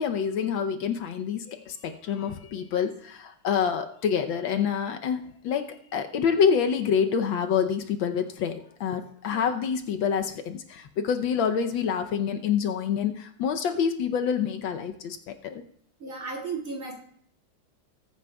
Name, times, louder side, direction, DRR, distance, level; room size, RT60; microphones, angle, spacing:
voice 1, 0.0-15.6, left 7 dB, 75° left, 6 dB, 1.4 m, -27 dB
voice 2, 16.0-16.9, right 4 dB, 40° right, -3 dB, 2.5 m, -35 dB
20.0 x 9.0 x 2.3 m, 0.63 s
omnidirectional pair, 2.2 m